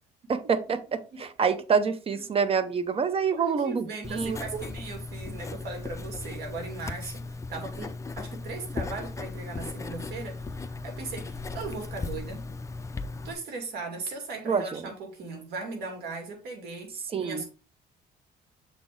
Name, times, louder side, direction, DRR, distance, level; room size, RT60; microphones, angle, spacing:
voice 1, 0.3-4.6 14.4-14.8 17.1-17.4, right 6 dB, 35° right, 0.8 m, -27 dB
voice 2, 0.9-1.2 2.1-2.4 3.3-12.4 13.2-17.5, right 3 dB, 70° right, 2.6 m, -38 dB
Writing, 4.0-13.3, left 3 dB, 20° left, 0.5 m, -37 dB
7.0 x 4.0 x 3.8 m
cardioid pair, 110°, 17 cm